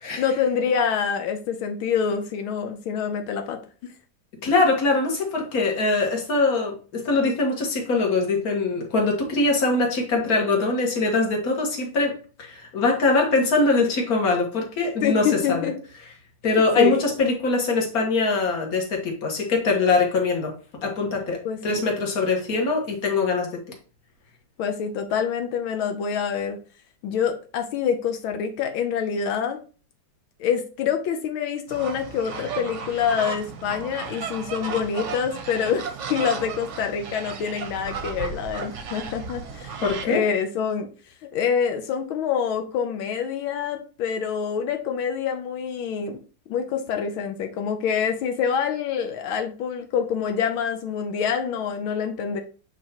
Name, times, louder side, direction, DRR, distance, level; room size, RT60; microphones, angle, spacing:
voice 1, 0.2-3.9 15.0-15.8 16.8-17.0 21.4-21.9 24.6-26.6 27.0-29.6 30.4-40.9 41.3-46.2 46.5-52.4, left 7 dB, 85° left, 5 dB, 1.6 m, -26 dB
voice 2, 4.4-15.7 16.4-20.5 20.8-23.5 39.8-40.2, left 3 dB, 50° left, 2 dB, 1.9 m, -22 dB
sound 1, 31.7-40.1, right 6 dB, 50° right, 0.9 m, -34 dB
8.0 x 4.5 x 2.9 m, 0.37 s
omnidirectional pair, 2.2 m